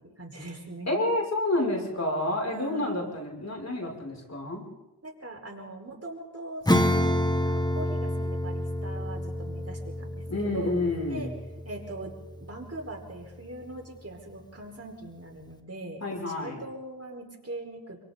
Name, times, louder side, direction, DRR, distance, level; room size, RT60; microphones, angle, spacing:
voice 1, 0.0-1.1 2.5-3.0 5.0-6.9 7.4-10.8 11.1-11.3 11.6-18.0, right 2 dB, 35° right, 1 dB, 4.9 m, -41 dB
voice 2, 0.9-4.7 10.3-11.3 16.0-16.6, left 2 dB, 40° left, -1 dB, 6.8 m, -29 dB
Acoustic guitar / Strum, 6.7-12.7, left 1 dB, 10° left, 2.0 m, -28 dB
27.5 x 26.0 x 4.1 m, 1.0 s
cardioid pair, 65°, 40 cm